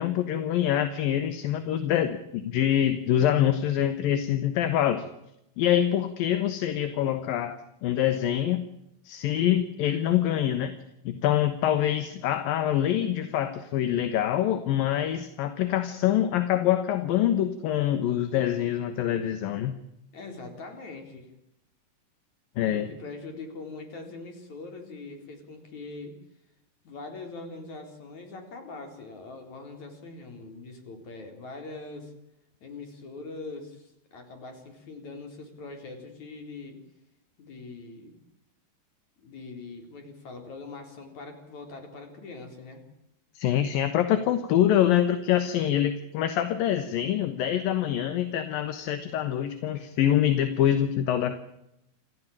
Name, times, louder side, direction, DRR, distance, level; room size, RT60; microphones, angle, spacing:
voice 1, 0.0-5.1 5.6-7.6 7.8-8.6 9.1-10.7 11.0-19.8 22.6-22.9 43.4-51.4, left 11 dB, 75° left, 10 dB, 2.9 m, -25 dB
voice 2, 11.9-12.3 20.1-21.3 22.7-26.2 26.8-32.1 32.6-36.8 37.4-38.2 39.2-42.8, left 3 dB, 50° left, 5 dB, 5.4 m, -42 dB
28.0 x 15.0 x 8.7 m, 0.83 s
omnidirectional pair, 4.3 m